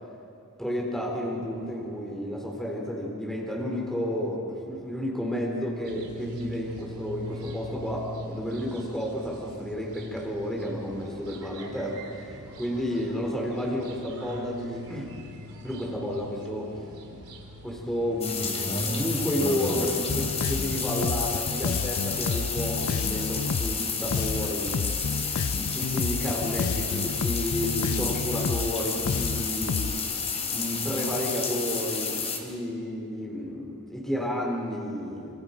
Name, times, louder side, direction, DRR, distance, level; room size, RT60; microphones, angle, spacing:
voice 1, 0.6-15.1 15.6-16.7 17.6-18.6 18.8-24.8 25.6-29.9 30.5-35.4, equal, ahead, -2 dB, 3.6 m, -31 dB
sound 1, 5.8-21.3, equal, 75° right, 3.4 m, -43 dB
sound 2, 18.2-32.4, left 5 dB, 30° left, 3.4 m, -31 dB
Bass guitar, 20.1-30.0, left 5 dB, 65° left, 0.5 m, -30 dB
28.5 x 26.5 x 5.1 m, 2.6 s
head